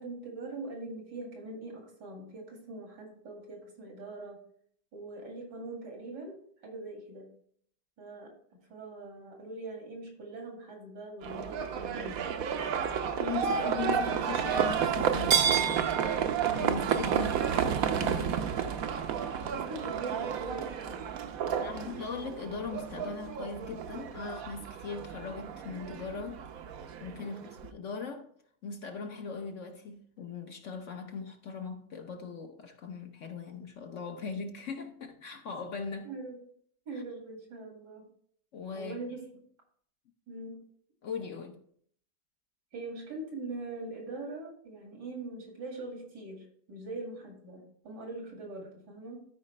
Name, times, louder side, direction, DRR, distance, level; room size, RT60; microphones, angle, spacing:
voice 1, 0.0-4.4 4.9-7.3 8.0-8.3 8.7-12.4 13.4-14.0 15.6-15.7 19.5-21.1 21.5-22.1 27.2-27.5 36.0-36.4 36.9-38.1 38.7-39.2 40.3-40.6 42.7-49.2, right 2 dB, 85° right, 2.7 m, -42 dB
Livestock farm animals working animals, 11.2-27.7, right 7 dB, 65° right, 1.1 m, -31 dB
voice 2, 13.2-15.8 16.5-18.4 21.6-26.4 27.0-28.3 28.6-36.1 38.5-39.0 41.0-41.6, left 5 dB, 55° left, 0.9 m, -39 dB
13.0 x 5.0 x 3.2 m
omnidirectional pair, 1.8 m